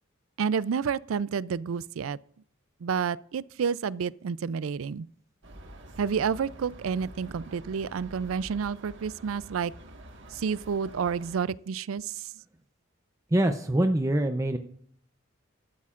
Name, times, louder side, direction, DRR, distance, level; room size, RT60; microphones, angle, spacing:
voice 1, 0.4-2.2 2.8-5.1 6.0-9.7 10.3-12.3, right 6 dB, 85° right, 0.4 m, -30 dB
sound 1, 5.4-11.4, right 1 dB, 65° right, 1.7 m, -47 dB
voice 2, 13.3-14.6, right 1 dB, 15° right, 0.6 m, -24 dB
16.0 x 12.5 x 2.5 m
head